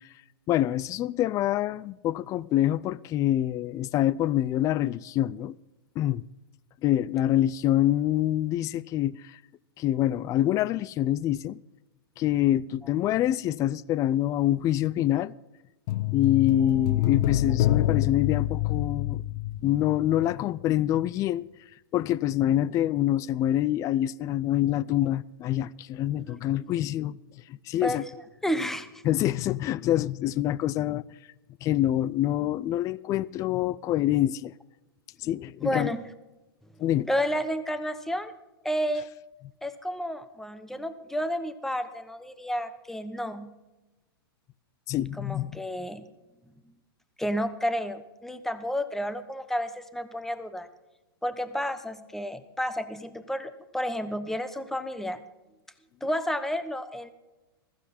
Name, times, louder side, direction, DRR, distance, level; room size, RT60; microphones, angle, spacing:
voice 1, 0.5-5.5 6.0-6.2 6.8-9.4 9.8-11.6 12.2-15.3 16.1-19.2 19.6-21.5 21.9-27.1 27.5-28.0 29.0-31.0 31.6-34.5 35.2-35.9 36.8-37.1 44.9-45.6, left 13 dB, 25° left, 0.4 m, -26 dB
sound 1, 15.9-20.3 20.6-20.7, left 13 dB, 50° left, 0.8 m, -27 dB
voice 2, 28.4-28.9 35.6-36.0 37.1-38.3 38.6-39.1 39.6-43.5 45.2-46.0 47.2-50.7 51.2-55.2 56.0-57.1, equal, 5° left, 1.1 m, -31 dB
15.5 x 14.5 x 4.2 m
hypercardioid pair, 120°, 12 cm